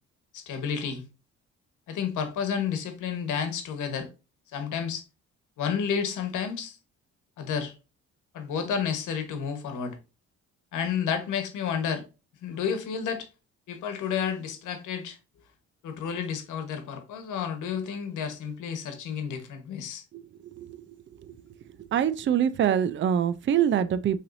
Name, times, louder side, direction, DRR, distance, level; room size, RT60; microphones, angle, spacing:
voice 1, 0.3-1.0 1.9-4.1 4.5-5.0 5.6-6.8 7.4-7.7 8.3-10.0 10.7-12.0 12.4-13.3 13.7-15.2 15.8-20.0, left 7 dB, 85° left, 1.2 m, -31 dB
voice 2, 20.5-20.9 21.2-21.3 21.9-24.2, right 9 dB, 40° right, 0.5 m, -25 dB
5.7 x 3.3 x 2.6 m
cardioid pair, 90°, 30 cm